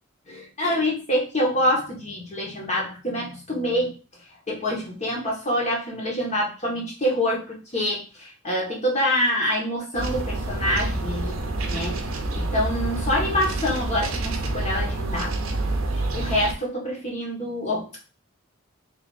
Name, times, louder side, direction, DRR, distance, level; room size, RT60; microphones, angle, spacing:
voice 1, 0.3-3.9 4.5-11.4 11.7-12.1 12.4-15.3 16.1-17.9, equal, 35° left, -2 dB, 1.2 m, -26 dB
sound 1, 9.9-16.5, right 2 dB, 80° right, 0.7 m, -28 dB
3.5 x 2.7 x 4.1 m, 0.34 s
head